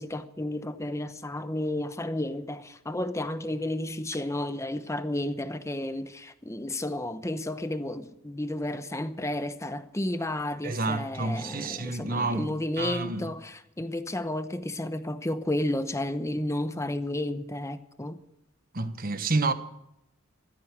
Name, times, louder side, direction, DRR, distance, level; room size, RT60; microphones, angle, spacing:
voice 1, 0.0-18.2, left 1 dB, 15° left, 0.9 m, -32 dB
voice 2, 10.6-13.3 18.7-19.5, right 3 dB, 45° right, 1.3 m, -29 dB
16.0 x 13.0 x 6.1 m
head